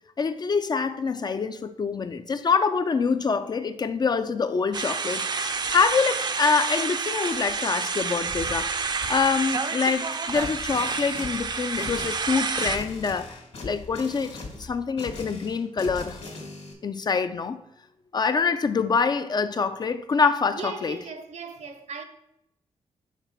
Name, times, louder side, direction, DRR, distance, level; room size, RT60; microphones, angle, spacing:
voice 1, 0.2-16.2 16.8-17.6 18.1-21.0, left 5 dB, 35° left, 0.4 m, -25 dB
sound 1, 4.7-12.8, right 4 dB, 35° right, 0.5 m, -29 dB
sound 2, 10.3-16.7, left 3 dB, 60° left, 1.7 m, -40 dB
voice 2, 20.5-22.0, right 4 dB, 65° right, 0.8 m, -37 dB
5.8 x 4.5 x 4.4 m
wide cardioid pair, 120°, 12 cm